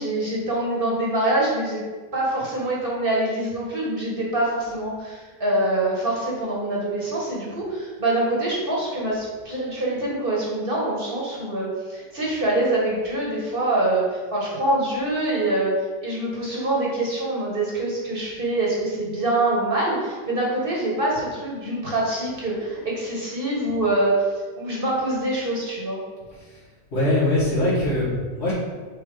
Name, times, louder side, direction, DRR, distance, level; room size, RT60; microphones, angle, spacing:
voice 1, 0.0-1.8 2.1-15.7 16.0-24.1 24.5-26.0, right 1 dB, 30° right, -4 dB, 1.6 m, -25 dB
voice 2, 26.9-28.5, left 1 dB, 35° left, -10 dB, 2.2 m, -22 dB
7.5 x 3.1 x 5.0 m, 1.4 s
omnidirectional pair, 1.9 m